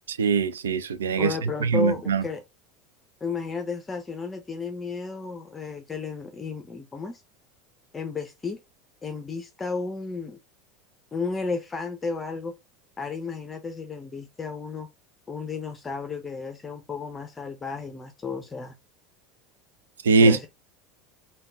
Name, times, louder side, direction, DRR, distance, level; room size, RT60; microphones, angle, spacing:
voice 1, 0.1-1.3 1.6-2.2 20.0-20.5, right 4 dB, 75° right, 0.3 m, -21 dB
voice 2, 1.2-2.4 3.2-7.2 7.9-8.6 9.0-10.4 11.1-12.5 13.0-14.9 15.3-18.8 20.2-20.5, left 4 dB, 20° left, 0.7 m, -33 dB
3.7 x 2.3 x 3.4 m
figure-of-eight pair, 75°, 0 cm